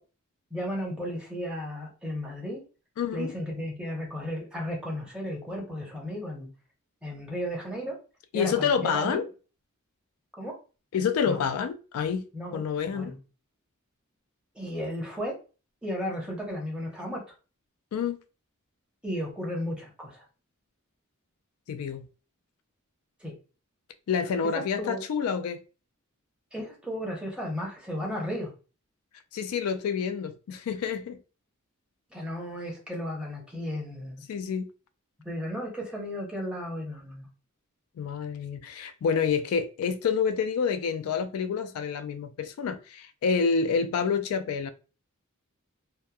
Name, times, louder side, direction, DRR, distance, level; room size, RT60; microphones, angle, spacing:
voice 1, 0.5-2.6 3.1-6.5 7.0-7.9 8.3-9.2 10.4-10.5 11.2-11.5 12.3-13.2 14.5-15.3 15.8-17.2 19.0-20.2 23.2-23.3 24.8-25.0 26.5-28.5 32.1-34.2 35.2-37.3, equal, 5° right, 0.8 m, -34 dB
voice 2, 3.0-3.3 8.3-9.3 10.9-12.2 12.5-13.1 17.9-18.2 21.7-22.1 24.1-25.6 29.3-31.2 34.3-34.7 38.0-44.7, left 6 dB, 80° left, 0.3 m, -28 dB
2.9 x 2.1 x 2.2 m
head